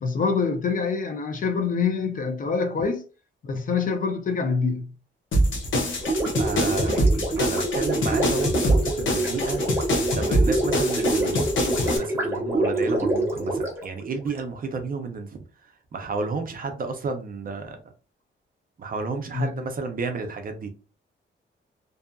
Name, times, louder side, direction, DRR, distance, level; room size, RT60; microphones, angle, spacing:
voice 1, 0.0-3.0 3.4-4.9 19.3-19.5, left 5 dB, 40° left, 0.4 m, -25 dB
sound 1, 5.3-12.0, equal, 70° left, 0.7 m, -24 dB
Gurgling, 6.0-14.4, right 2 dB, 10° right, 0.7 m, -26 dB
voice 2, 6.4-9.7 10.2-11.5 11.9-15.4 15.9-17.8 18.8-20.7, right 4 dB, 45° right, 0.5 m, -31 dB
2.6 x 2.5 x 2.2 m
wide cardioid pair, 170°, 21 cm